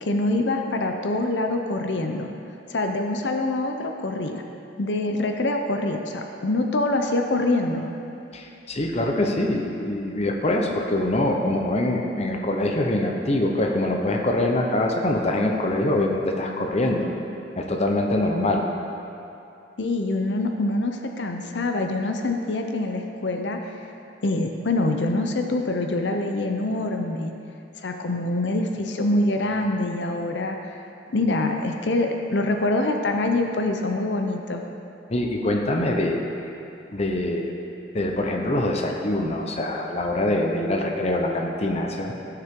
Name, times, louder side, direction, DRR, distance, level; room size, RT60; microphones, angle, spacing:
voice 1, 0.0-2.3 2.7-4.4 4.8-7.9 19.8-23.7 24.2-27.3 27.8-30.6 31.1-34.6, left 2 dB, 70° left, 4 dB, 0.7 m, -25 dB
voice 2, 8.3-17.1 17.6-18.6 35.1-36.2 36.9-37.5 37.9-42.1, left 1 dB, 35° left, 1 dB, 0.9 m, -24 dB
16.5 x 6.7 x 3.7 m, 2.7 s
head